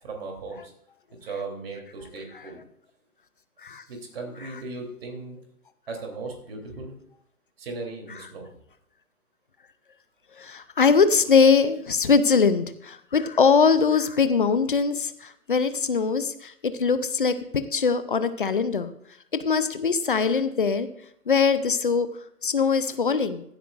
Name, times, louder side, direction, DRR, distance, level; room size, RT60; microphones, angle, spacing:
voice 1, 0.0-0.7 1.2-2.6 3.9-5.4 5.9-6.9 7.6-8.5, right 3 dB, 40° right, 2 dB, 3.3 m, -37 dB
voice 2, 10.4-16.5 16.8-17.3 17.7-18.9 19.4-20.9 21.3-22.1 22.4-23.4, left 5 dB, 35° left, 12 dB, 0.7 m, -21 dB
16.0 x 12.5 x 2.5 m, 0.70 s
figure-of-eight pair, 135°, 46 cm